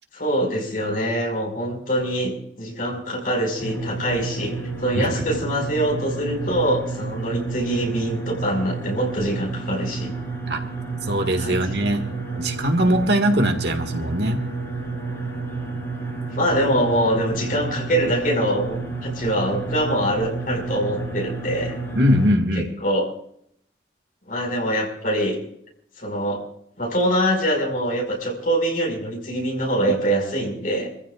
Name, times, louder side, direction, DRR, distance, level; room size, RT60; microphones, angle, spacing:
voice 1, 0.1-4.5 4.8-10.1 11.4-11.6 16.3-21.8 22.8-23.1 24.3-25.4 26.0-26.4 26.8-30.9, equal, 50° left, 0 dB, 5.4 m, -24 dB
sound 1, 3.6-22.3, right 3 dB, 15° left, 7.7 m, -30 dB
voice 2, 11.0-12.1 12.4-14.4 21.9-22.7, equal, 65° right, 5 dB, 1.9 m, -21 dB
26.0 x 15.0 x 2.4 m, 0.70 s
head